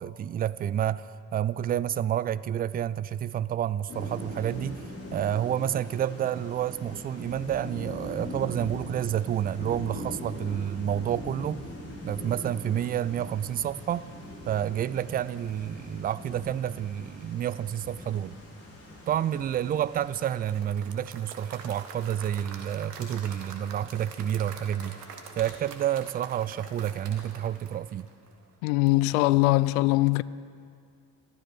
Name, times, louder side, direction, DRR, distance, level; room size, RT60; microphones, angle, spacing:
voice 1, 0.0-4.8 5.1-11.7 12.0-14.1 14.5-18.4 19.1-25.0 25.4-28.1, right 10 dB, 20° right, 0.3 m, -29 dB
Thunder / Rain, 3.9-20.6, left 1 dB, 30° left, 5.1 m, -41 dB
Applause / Crowd, 20.3-28.4, right 5 dB, 80° right, 1.2 m, -45 dB
Hands, 22.4-29.3, right 1 dB, 40° right, 4.7 m, -58 dB
voice 2, 28.6-30.2, left 20 dB, 70° left, 0.5 m, -22 dB
14.5 x 13.5 x 6.6 m
figure-of-eight pair, 40°, 46 cm